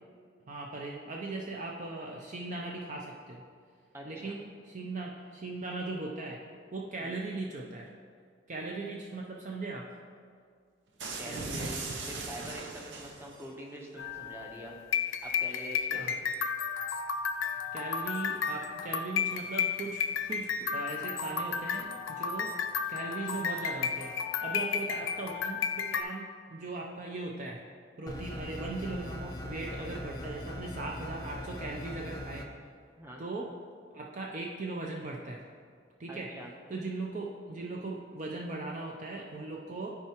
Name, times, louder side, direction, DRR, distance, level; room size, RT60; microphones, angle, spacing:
voice 1, 0.5-3.4 4.0-6.4 6.7-7.9 8.5-9.9 11.2-11.5 15.9-16.1 17.7-20.0 20.3-22.5 22.9-24.2 24.4-27.6 28.0-32.5 33.2-33.5 33.9-35.4 36.0-36.3 36.7-39.9, right 2 dB, 40° right, -1 dB, 0.5 m, -38 dB
voice 2, 3.9-4.4 7.0-7.1 11.2-14.8 15.2-16.2 33.0-33.2 36.1-36.5, equal, 15° right, -1 dB, 0.8 m, -45 dB
sound 1, 11.0-13.5, right 3 dB, 70° right, 0.8 m, -38 dB
sound 2, 14.0-26.0, left 6 dB, 90° left, 0.5 m, -33 dB
sound 3, 28.1-32.4, left 1 dB, 20° left, 0.5 m, -41 dB
12.5 x 4.6 x 3.0 m, 2.1 s
head